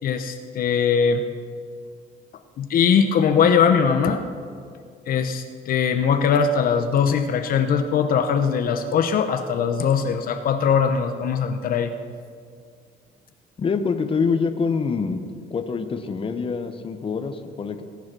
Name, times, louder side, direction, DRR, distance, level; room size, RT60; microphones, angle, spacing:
voice 1, 0.0-1.2 2.6-4.2 5.1-11.9, left 6 dB, 60° left, 7 dB, 0.9 m, -21 dB
voice 2, 13.6-15.2 15.5-17.8, left 5 dB, 30° left, 8 dB, 1.0 m, -25 dB
19.0 x 9.5 x 6.2 m, 2.1 s
cardioid pair, 110°, 17 cm